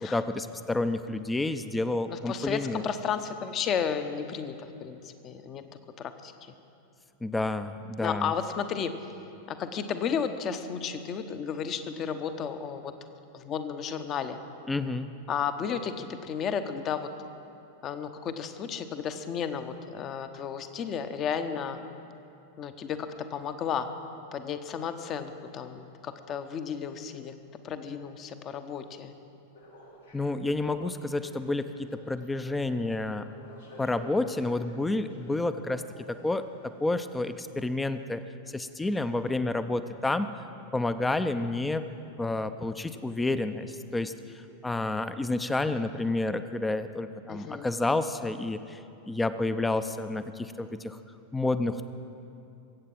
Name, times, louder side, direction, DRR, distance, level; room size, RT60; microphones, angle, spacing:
voice 1, 0.0-2.9 7.2-8.3 14.7-15.1 30.1-33.2 33.8-35.8 36.1-36.5 36.8-40.3 40.7-41.9 42.2-48.8 49.1-51.0 51.3-51.8, left 2 dB, 10° left, 11 dB, 0.6 m, -30 dB
voice 2, 2.1-4.5 4.8-5.6 6.0-6.3 8.0-8.9 9.5-12.9 13.3-14.4 15.3-17.1 17.8-21.8 22.6-23.9 24.3-27.3 27.6-29.1 47.3-47.7, left 7 dB, 30° left, 9 dB, 0.9 m, -33 dB
sound 1, 29.5-36.8, left 1 dB, 75° left, 2.6 m, -52 dB
22.5 x 8.3 x 6.1 m, 2.7 s
figure-of-eight pair, 90°, 0 cm